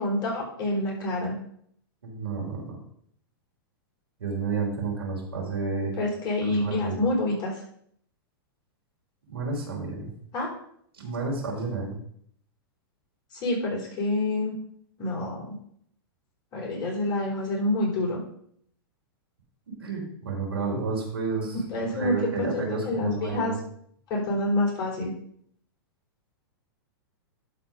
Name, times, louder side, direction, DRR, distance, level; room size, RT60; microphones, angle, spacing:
voice 1, 0.0-1.4 6.0-7.5 10.3-10.5 13.3-14.6 15.0-15.6 16.5-18.2 21.7-23.5 24.1-25.1, left 1 dB, 35° left, -3 dB, 4.0 m, -27 dB
voice 2, 2.0-2.8 4.2-5.9 6.4-6.9 9.3-10.1 10.9-11.9 19.7-21.6 21.8-23.6, right 4 dB, 90° right, -2 dB, 3.9 m, -31 dB
11.5 x 4.6 x 5.1 m, 0.67 s
hypercardioid pair, 125°, 12 cm